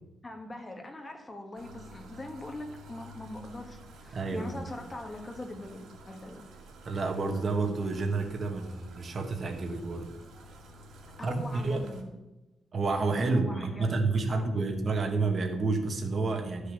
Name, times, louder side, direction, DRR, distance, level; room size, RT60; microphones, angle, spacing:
voice 1, 0.2-6.4 11.2-12.2 13.2-14.7, left 1 dB, 20° left, 3 dB, 1.5 m, -42 dB
sound 1, 1.6-12.0, right 2 dB, 85° right, 2.1 m, -51 dB
voice 2, 4.1-4.7 6.8-10.1 11.2-11.9 12.7-16.7, right 3 dB, 35° right, 4 dB, 1.3 m, -30 dB
11.5 x 6.6 x 6.9 m, 1.0 s
wide cardioid pair, 165°, 0 cm